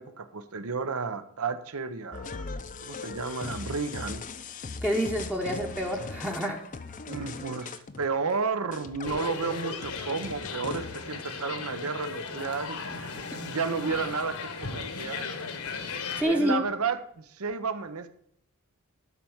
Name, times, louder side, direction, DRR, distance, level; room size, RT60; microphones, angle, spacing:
voice 1, 0.0-2.5 2.8-4.3 7.1-15.3 16.2-18.1, right 5 dB, 70° right, 0.8 m, -32 dB
sound 1, 2.1-11.2, left 4 dB, 35° left, 0.6 m, -40 dB
voice 2, 4.8-6.7 13.3-13.4 15.9-16.6, equal, 5° right, 0.9 m, -28 dB
sound 2, 9.0-16.2, left 4 dB, 70° left, 1.3 m, -36 dB
12.5 x 4.5 x 7.1 m
head